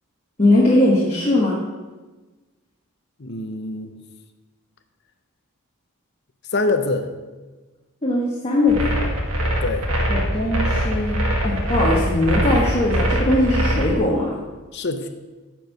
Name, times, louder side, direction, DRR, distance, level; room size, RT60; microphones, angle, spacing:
voice 1, 0.4-1.6 8.0-9.0 10.1-11.2 11.4-14.3, left 1 dB, 25° left, -5 dB, 1.3 m, -20 dB
voice 2, 3.2-3.9 6.5-7.1 9.6-9.9 14.7-15.1, left 2 dB, 50° left, 7 dB, 0.7 m, -24 dB
sound 1, 8.7-13.9, equal, 75° right, 1.6 m, -22 dB
10.5 x 4.6 x 6.5 m, 1.3 s
head